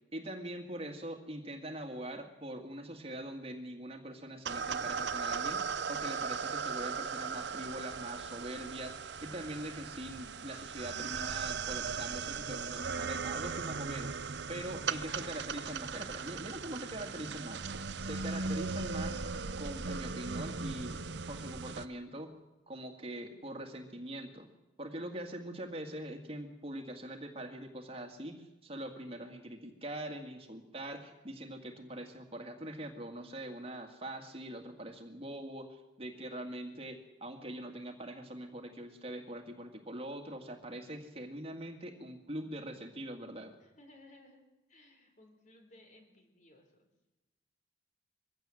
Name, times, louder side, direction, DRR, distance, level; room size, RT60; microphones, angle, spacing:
voice 1, 0.1-14.2 14.5-17.6 18.0-19.2 19.6-21.0 21.3-22.3 22.7-24.5 24.8-43.5, right 1 dB, 30° right, 4 dB, 2.1 m, -43 dB
sound 1, 4.5-21.9, right 5 dB, 65° right, 0.7 m, -38 dB
voice 2, 14.7-15.4 43.6-44.4 44.7-46.9, left 2 dB, 45° left, 4 dB, 3.9 m, -59 dB
22.5 x 16.0 x 7.8 m, 1.0 s
head